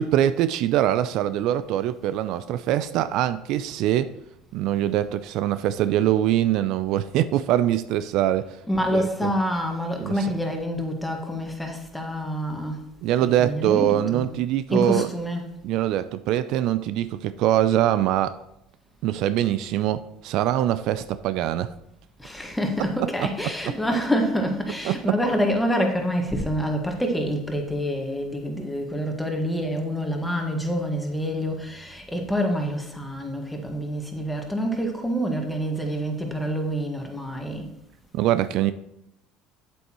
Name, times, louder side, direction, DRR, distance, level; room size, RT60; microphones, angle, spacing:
voice 1, 0.0-4.1 4.5-8.6 8.9-9.3 10.0-10.3 13.0-15.1 15.6-18.4 19.0-21.7 24.9-25.0 38.1-38.7, right 12 dB, 65° right, 0.4 m, -23 dB
voice 2, 8.7-12.8 13.4-14.3 14.7-15.4 22.2-37.7, equal, 5° left, 1.6 m, -27 dB
8.3 x 7.8 x 3.0 m
supercardioid pair, 90°, 0 cm